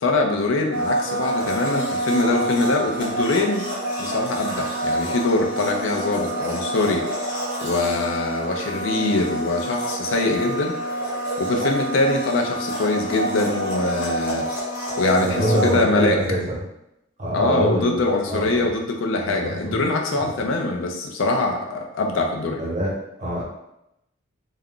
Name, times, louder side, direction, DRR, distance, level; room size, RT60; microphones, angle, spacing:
voice 1, 0.0-3.7 4.0-7.0 7.6-10.8 11.4-14.5 14.9-16.2 17.3-22.6, left 2 dB, 75° left, 2 dB, 0.4 m, -23 dB
Domestic sounds home sounds, 0.7-15.8, right 1 dB, 40° left, 0.8 m, -27 dB
voice 2, 15.2-16.6 17.2-18.0 18.3-18.7 19.2-19.8 20.1-20.4 22.6-22.9 23.2-23.4, equal, 35° right, -5 dB, 0.8 m, -25 dB
2.3 x 2.1 x 3.6 m, 0.85 s
head